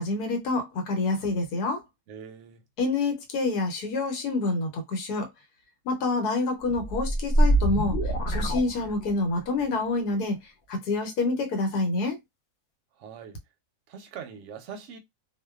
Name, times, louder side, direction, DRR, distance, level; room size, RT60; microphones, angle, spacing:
voice 1, 0.0-1.8 2.8-5.3 5.8-8.0 8.3-10.4 10.7-12.2, left 3 dB, 85° left, 1.3 m, -27 dB
voice 2, 2.1-2.6 13.0-13.4 13.9-15.0, right 7 dB, 65° right, 0.8 m, -42 dB
sound 1, 6.7-9.4, right 1 dB, 55° left, 0.6 m, -24 dB
2.6 x 2.2 x 2.2 m
omnidirectional pair, 1.6 m